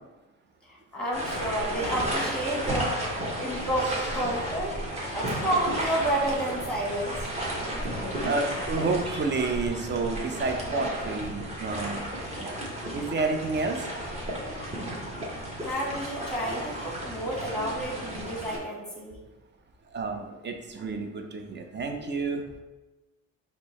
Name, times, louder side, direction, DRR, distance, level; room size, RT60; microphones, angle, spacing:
voice 1, 0.7-3.0 3.4-4.7 5.1-7.3 15.6-19.2, right 1 dB, 5° left, -3 dB, 1.3 m, -30 dB
sound 1, 1.1-18.6, right 1 dB, 20° right, 1.1 m, -33 dB
voice 2, 8.2-12.0 12.3-12.5 12.9-13.9 19.9-22.4, right 3 dB, 35° right, 5 dB, 0.6 m, -30 dB
4.3 x 2.2 x 4.0 m, 1.1 s
cardioid pair, 90°, 30 cm